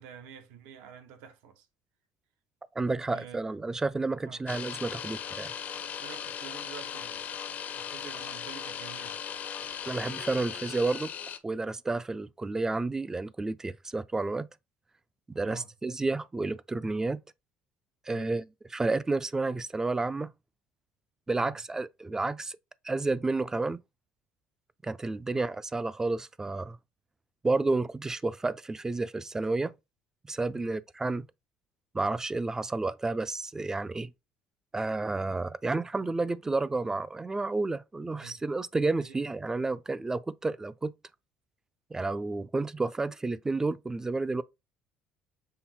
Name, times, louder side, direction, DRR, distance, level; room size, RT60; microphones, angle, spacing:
voice 1, 0.0-1.7 3.1-3.4 4.2-4.4 6.0-7.2 7.7-9.2 15.4-15.7 18.1-18.3 21.4-21.6 25.3-25.4 30.5-30.7 38.2-38.4 39.0-39.2, right 7 dB, 85° right, 0.9 m, -48 dB
voice 2, 2.8-5.5 9.9-11.1 11.4-14.5 15.3-17.2 18.1-18.5 18.7-20.3 21.3-22.6 22.8-23.8 24.8-26.8 27.4-29.7 30.3-31.3 31.9-34.1 34.7-40.9 41.9-44.4, right 3 dB, 15° right, 0.3 m, -31 dB
sound 1, 4.5-11.4, left 8 dB, 50° left, 0.6 m, -38 dB
5.6 x 2.0 x 4.2 m
supercardioid pair, 90°, 3 cm